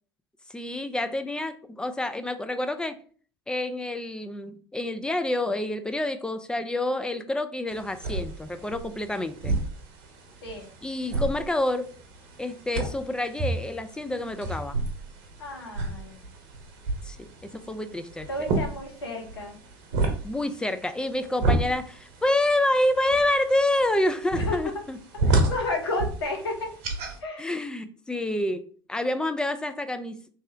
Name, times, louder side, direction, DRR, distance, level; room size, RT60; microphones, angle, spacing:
voice 1, 0.5-3.0 3.5-9.5 10.8-11.9 12.4-14.8 17.0-18.3 20.2-25.0 27.4-30.3, left 1 dB, 5° left, 9 dB, 0.3 m, -28 dB
sound 1, 7.7-27.2, right 2 dB, 55° right, 0.8 m, -31 dB
voice 2, 15.4-16.2 18.3-19.6 24.3-24.6 25.1-26.7 27.2-27.4, left 2 dB, 75° left, 2 dB, 0.9 m, -32 dB
3.2 x 2.8 x 3.2 m, 0.44 s
figure-of-eight pair, 70°, 13 cm